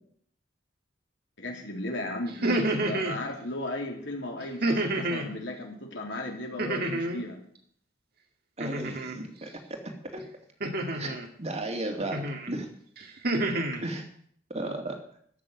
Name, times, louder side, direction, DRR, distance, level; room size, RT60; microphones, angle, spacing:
voice 1, 1.4-7.4, left 1 dB, 70° left, 1 dB, 3.3 m, -35 dB
sound 1, 2.3-3.2 4.6-5.3 6.6-7.3 8.6-9.2 10.6-11.3 12.1-12.5 13.0-13.8, right 1 dB, 55° right, 2.1 m, -29 dB
voice 2, 8.6-10.2 10.9-12.7 13.8-14.1 14.5-15.0, right 2 dB, 35° right, 4 dB, 2.7 m, -35 dB
14.5 x 6.8 x 9.7 m, 0.62 s
head